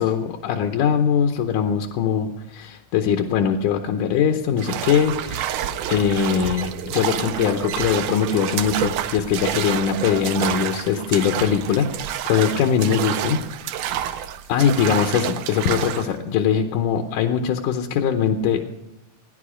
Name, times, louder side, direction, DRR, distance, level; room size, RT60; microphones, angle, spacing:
voice 1, 0.0-5.5 5.9-11.9 12.3-13.4 13.7-18.6, left 7 dB, 75° left, 5 dB, 2.1 m, -21 dB
sound 1, 4.6-16.1, right 11 dB, 75° right, 2.0 m, -29 dB
sound 2, 4.9-10.4, right 7 dB, 60° right, 1.7 m, -36 dB
17.0 x 10.5 x 5.0 m, 0.95 s
omnidirectional pair, 4.0 m